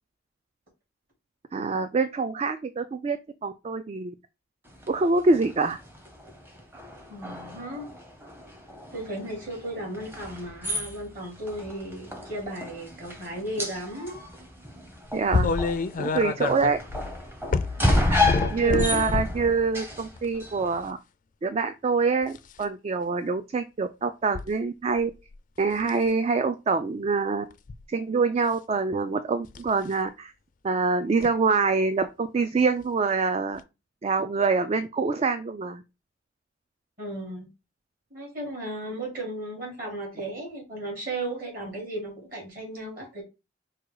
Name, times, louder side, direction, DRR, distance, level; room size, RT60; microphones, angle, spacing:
voice 1, 1.5-3.2 3.4-4.1 4.9-5.8 15.1-15.5 16.0-16.8 18.5-21.0 21.4-25.1 25.6-27.5 27.9-30.3 30.6-33.6 34.0-35.8, right 4 dB, 35° right, 0.3 m, -25 dB
sound 1, 4.7-20.9, left 1 dB, 10° right, 0.8 m, -32 dB
voice 2, 7.1-7.9 8.9-14.2 15.9-16.1 17.8-18.8 37.0-37.5 38.1-43.2, right 1 dB, 50° right, 2.8 m, -35 dB
sound 2, 15.3-19.5 20.2-20.4 22.2-22.6 24.3-24.5 25.0-25.4 25.8-26.1 27.5-27.8 29.5-29.7 31.2-31.3 32.8-32.9 33.6-33.7, left 4 dB, 45° left, 0.4 m, -28 dB
4.8 x 2.3 x 4.7 m
head